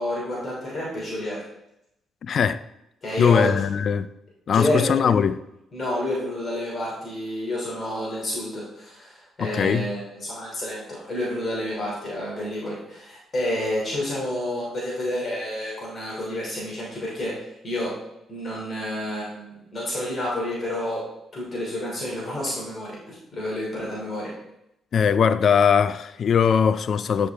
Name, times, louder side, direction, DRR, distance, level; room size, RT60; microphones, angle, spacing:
voice 1, 0.0-1.5 3.0-3.5 3.8-3.9 4.5-5.1 5.7-17.3 17.6-17.9 18.3-21.0 21.3-24.3, left 1 dB, 40° left, 2.7 m, -29 dB
voice 2, 2.2-2.6 3.2-4.1 4.5-5.4 9.4-9.9 24.9-27.3, left 7 dB, 55° left, 0.3 m, -20 dB
9.6 x 4.9 x 3.4 m
cardioid pair, 95°, 0 cm